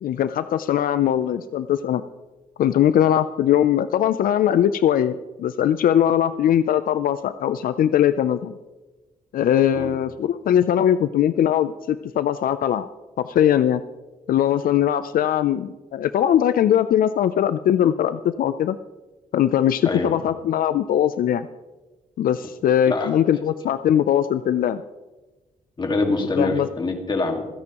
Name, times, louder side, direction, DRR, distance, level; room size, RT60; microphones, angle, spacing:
voice 1, 0.0-2.0 2.6-8.5 9.3-12.9 13.2-13.8 14.3-18.8 19.3-21.5 22.2-24.8 26.4-26.7, left 10 dB, 80° left, 12 dB, 0.4 m, -20 dB
voice 2, 25.8-27.5, left 3 dB, 30° left, 4 dB, 1.9 m, -24 dB
26.5 x 9.7 x 3.0 m, 1.2 s
wide cardioid pair, 135°, 15 cm